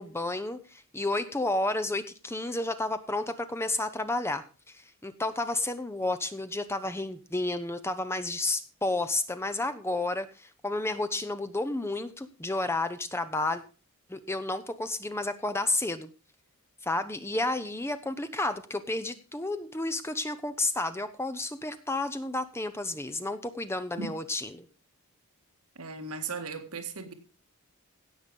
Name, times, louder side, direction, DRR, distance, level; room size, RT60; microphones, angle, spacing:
voice 1, 0.0-13.6 14.1-16.1 16.8-24.7, left 2 dB, 10° left, 0.7 m, -31 dB
voice 2, 25.8-27.1, right 5 dB, 85° right, 1.9 m, -37 dB
16.5 x 6.7 x 5.3 m
head